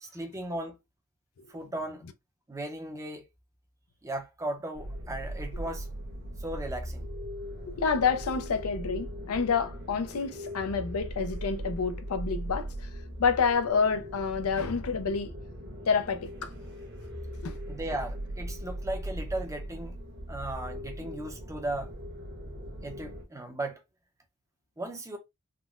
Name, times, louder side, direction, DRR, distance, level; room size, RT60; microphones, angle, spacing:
voice 1, 0.0-0.8 1.5-2.0 2.5-3.2 4.0-5.9 6.4-7.1 17.7-19.9 20.3-21.9 22.8-23.8 24.8-25.2, right 1 dB, 15° right, 0.6 m, -36 dB
sound 1, 4.7-23.2, equal, 55° right, 1.0 m, -39 dB
voice 2, 7.8-12.9 13.2-15.3 15.9-16.5 17.4-17.5 21.0-21.1, left 5 dB, 85° left, 0.5 m, -28 dB
3.7 x 2.1 x 2.4 m
head